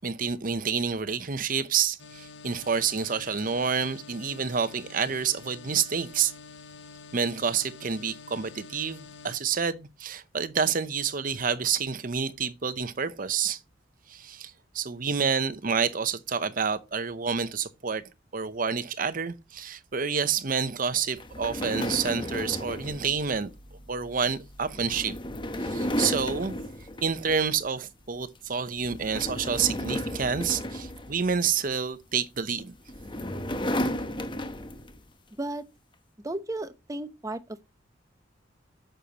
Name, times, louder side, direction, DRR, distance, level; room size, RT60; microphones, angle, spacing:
voice 1, 0.0-6.3 7.1-13.6 14.1-18.0 18.3-23.5 23.9-25.1 25.6-26.5 27.0-32.7, right 6 dB, 45° right, 0.8 m, -28 dB
sound 1, 2.0-9.4, left 5 dB, 65° left, 0.9 m, -47 dB
sound 2, 21.2-27.7 28.1-28.4 28.8-31.8 32.6-35.0, left 1 dB, 25° left, 0.9 m, -34 dB
voice 2, 36.2-37.6, right 2 dB, 20° right, 0.8 m, -34 dB
9.0 x 6.9 x 2.9 m
head